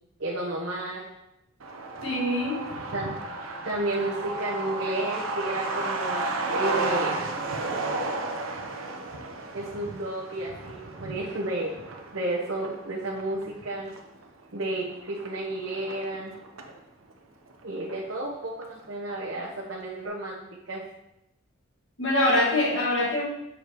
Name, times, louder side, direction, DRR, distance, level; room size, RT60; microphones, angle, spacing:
voice 1, 0.2-1.0 2.9-3.2 3.6-6.2 6.5-7.2 9.5-11.7 12.1-13.9 14.5-16.3 17.6-20.4 20.7-20.8, right 2 dB, 60° right, -4 dB, 1.1 m, -31 dB
Truck, 1.6-16.8 17.1-17.2 17.5-18.3 18.6-18.7 19.1-19.4, right 2 dB, 85° right, 0.8 m, -33 dB
voice 2, 2.0-2.7 22.0-23.2, left 1 dB, 65° left, -5 dB, 2.3 m, -24 dB
6.6 x 4.9 x 4.6 m, 0.86 s
head